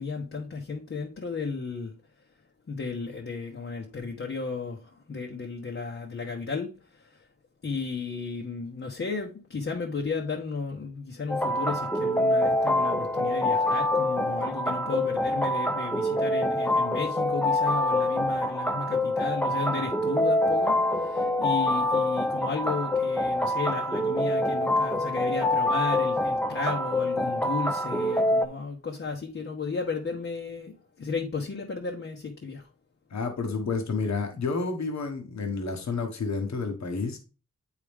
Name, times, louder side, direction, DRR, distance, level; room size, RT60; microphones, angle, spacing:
voice 1, 0.0-2.0 2.7-7.3 7.6-32.7, left 4 dB, 45° left, 1.0 m, -34 dB
sound 1, 11.3-28.5, left 1 dB, 5° left, 0.7 m, -26 dB
voice 2, 33.1-37.2, left 4 dB, 70° left, 1.4 m, -30 dB
8.3 x 4.9 x 3.5 m
wide cardioid pair, 85°, 29 cm